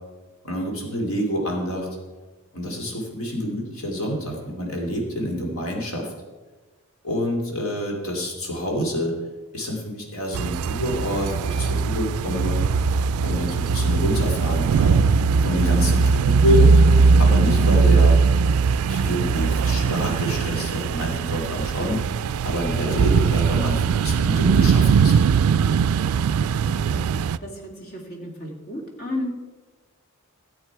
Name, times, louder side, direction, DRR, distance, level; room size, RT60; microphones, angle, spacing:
voice 1, 0.4-1.9 2.5-6.1 7.0-9.1 9.5-12.6 13.2-15.0 15.4-16.7 17.2-18.2 18.8-22.0 22.4-25.1, equal, 70° left, 0 dB, 2.7 m, -27 dB
sound 1, 10.3-27.4, right 5 dB, 75° right, 0.3 m, -20 dB
voice 2, 27.8-29.4, left 1 dB, 45° left, 1 dB, 2.2 m, -32 dB
13.5 x 8.1 x 4.7 m, 1.3 s
head